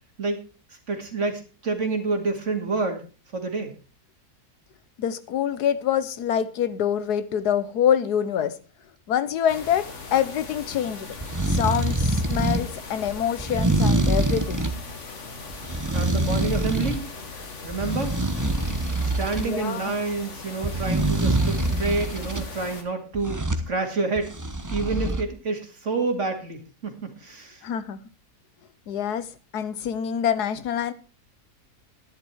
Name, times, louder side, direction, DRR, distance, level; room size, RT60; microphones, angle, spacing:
voice 1, 0.9-3.0 3.3-3.7 15.6-17.1 17.6-18.2 19.0-24.3 24.7-27.6, right 3 dB, 50° right, 2.5 m, -28 dB
voice 2, 5.0-8.6 9.1-11.1 11.5-14.6 19.4-19.9 27.6-28.0 28.9-29.3 29.5-30.9, left 9 dB, 85° left, 1.5 m, -25 dB
sound 1, 9.5-22.8, left 4 dB, 50° left, 2.0 m, -39 dB
sound 2, 11.1-12.7 13.4-14.8 15.5-17.0 17.4-19.5 20.6-22.5 23.1-23.7 24.2-25.2, right 2 dB, 15° right, 0.9 m, -25 dB
11.5 x 10.5 x 4.5 m
omnidirectional pair, 1.6 m